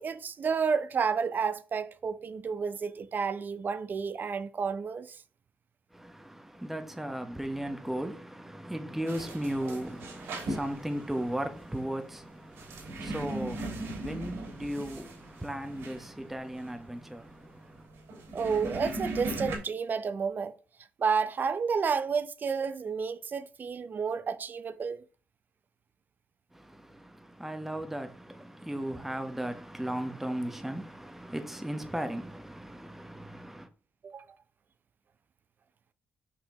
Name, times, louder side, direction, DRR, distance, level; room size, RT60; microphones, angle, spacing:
voice 1, 0.0-5.2 18.3-20.5 21.0-25.0 34.0-34.2, right 5 dB, 45° right, 0.7 m, -31 dB
voice 2, 5.9-17.9 26.5-33.7, right 1 dB, 5° right, 1.0 m, -36 dB
sound 1, 9.1-19.6, right 1 dB, 75° right, 3.2 m, -39 dB
5.9 x 5.0 x 3.6 m
supercardioid pair, 70°, 4 cm